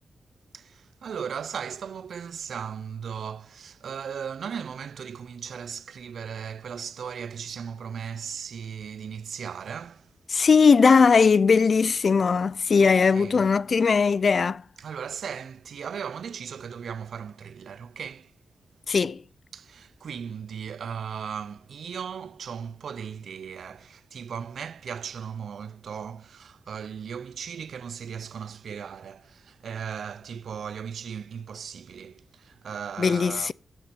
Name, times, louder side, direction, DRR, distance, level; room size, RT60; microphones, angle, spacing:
voice 1, 0.5-10.1 12.8-13.5 14.8-18.3 19.5-33.5, right 7 dB, 80° right, 0.4 m, -37 dB
voice 2, 10.3-14.6 18.9-19.2 33.0-33.5, left 5 dB, 55° left, 0.4 m, -19 dB
9.4 x 6.8 x 6.0 m
wide cardioid pair, 105°, 0 cm